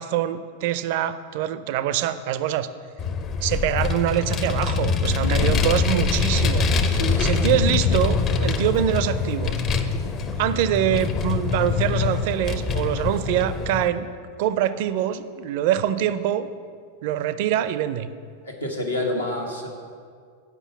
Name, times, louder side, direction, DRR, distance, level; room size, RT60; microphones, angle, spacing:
voice 1, 0.0-2.7 3.4-6.7 7.2-9.6 10.4-14.1 14.4-16.5 17.0-18.1, right 11 dB, 50° right, 13 dB, 0.4 m, -24 dB
Vehicle, 3.0-13.9, left 5 dB, 30° left, 0.6 m, -24 dB
voice 2, 5.2-5.5 6.9-7.3 18.4-19.7, left 1 dB, 85° left, -2 dB, 1.4 m, -28 dB
8.2 x 5.4 x 7.1 m, 2.1 s
figure-of-eight pair, 90°, 0 cm